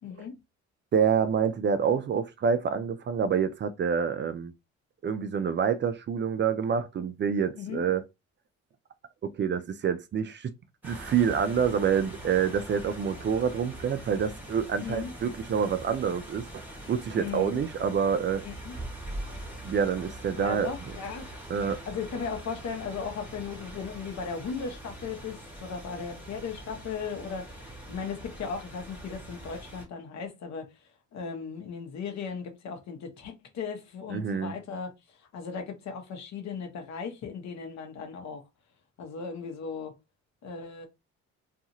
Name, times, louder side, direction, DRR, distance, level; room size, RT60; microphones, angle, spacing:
voice 1, 0.0-0.3 7.6-7.8 14.8-15.1 17.2-17.6 18.4-18.8 20.4-21.3 21.9-30.7 31.1-34.9 35.3-38.4 39.0-39.9 40.4-40.9, left 5 dB, 65° left, 0.9 m, -37 dB
voice 2, 0.9-4.5 5.0-8.0 9.2-10.5 10.8-18.5 19.6-20.7 21.5-21.8 34.1-34.5, right 7 dB, 40° right, 0.4 m, -27 dB
sound 1, 10.8-29.8, right 1 dB, 5° right, 1.1 m, -43 dB
2.6 x 2.4 x 2.8 m
cardioid pair, 90°, 30 cm